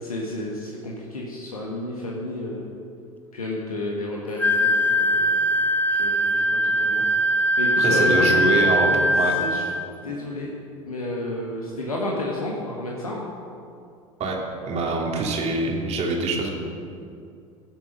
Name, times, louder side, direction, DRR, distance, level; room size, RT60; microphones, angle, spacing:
voice 1, 0.0-2.7 3.3-5.4 5.9-7.1 7.6-9.6 10.0-10.5 10.8-13.2, left 2 dB, 80° left, -2 dB, 1.5 m, -31 dB
Wind instrument woodwind instrument, 4.4-9.9, equal, 10° left, 0.8 m, -21 dB
voice 2, 7.8-8.9 9.2-9.3 14.2-14.4 14.7-16.5, right 3 dB, 35° right, 0 dB, 2.8 m, -24 dB
17.0 x 7.5 x 6.2 m, 2.5 s
figure-of-eight pair, 75°, 18 cm